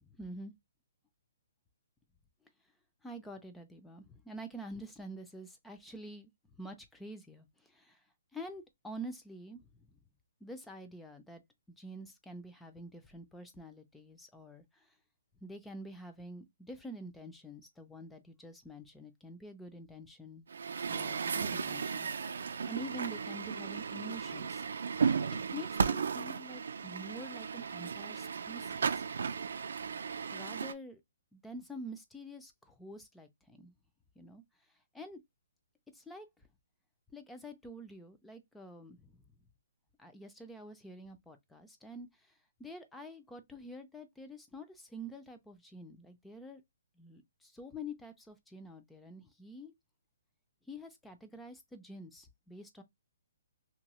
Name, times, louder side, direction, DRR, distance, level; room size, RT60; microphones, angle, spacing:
voice 1, 0.0-0.5 3.0-6.3 6.6-8.0 8.3-10.0 10.4-11.4 11.7-14.9 15.4-20.4 20.9-22.4 22.7-24.6 25.5-29.0 30.3-31.0 31.3-33.7 34.2-34.4 34.9-35.2 35.9-36.3 37.1-39.2 40.0-42.3 42.6-46.6 47.0-49.7 50.7-52.8, equal, 5° left, 0.3 m, -47 dB
Truck, 20.5-30.7, right 6 dB, 70° right, 0.3 m, -35 dB
2.8 x 2.2 x 2.9 m
hypercardioid pair, 170°, 0 cm